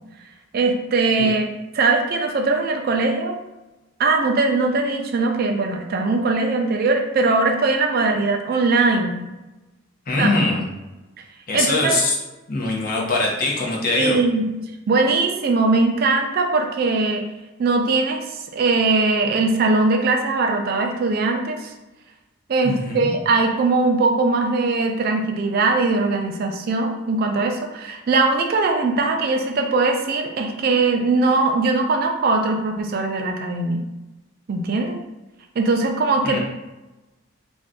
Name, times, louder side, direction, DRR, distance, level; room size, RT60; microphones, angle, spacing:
voice 1, 0.5-1.5 1.7-3.4 4.0-9.2 10.2-10.3 11.5-12.0 14.0-14.5 14.9-17.3 17.6-21.7 22.5-33.8 34.5-35.0 35.6-36.4, right 3 dB, 45° right, 3 dB, 0.3 m, -20 dB
voice 2, 10.1-10.6 11.5-12.2 12.5-14.2 22.6-23.1 36.2-36.4, left 2 dB, 45° left, -2 dB, 0.6 m, -22 dB
2.6 x 2.2 x 3.5 m, 1.1 s
head